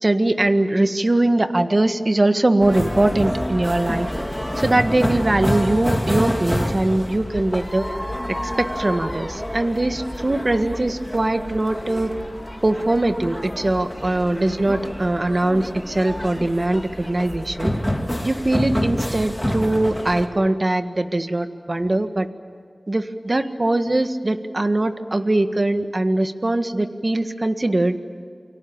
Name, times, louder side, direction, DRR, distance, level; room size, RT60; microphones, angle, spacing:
voice 1, 0.0-4.1 4.6-7.9 8.3-12.1 12.6-17.7 18.2-22.3 22.9-28.0, right 2 dB, 45° right, 8 dB, 1.6 m, -21 dB
sound 1, 2.6-20.3, equal, 10° left, 3.2 m, -28 dB
29.5 x 23.5 x 7.2 m, 2.2 s
wide cardioid pair, 60°, 0 cm